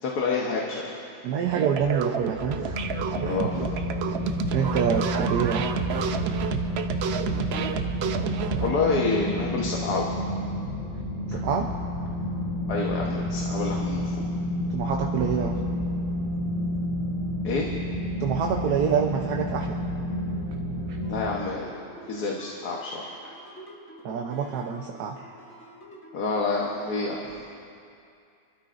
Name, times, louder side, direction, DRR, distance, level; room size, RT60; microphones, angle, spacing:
voice 1, 0.0-0.9 3.2-3.7 8.6-10.1 12.7-14.1 17.4-17.7 21.1-21.6 22.1-23.1 26.1-27.5, left 3 dB, 80° left, -2 dB, 1.7 m, -28 dB
voice 2, 1.2-2.8 3.2-3.4 4.5-5.7 11.3-11.7 14.7-15.6 18.2-19.8 20.9-21.0 24.0-25.2, right 7 dB, 85° right, 2 dB, 1.3 m, -27 dB
sound 1, 1.5-8.7, right 7 dB, 60° right, 0.7 m, -30 dB
sound 2, 2.4-21.3, left 1 dB, 25° right, 4.3 m, -30 dB
sound 3, 21.0-26.9, equal, 15° left, 2.5 m, -47 dB
29.0 x 12.5 x 2.6 m, 2.5 s
omnidirectional pair, 1.7 m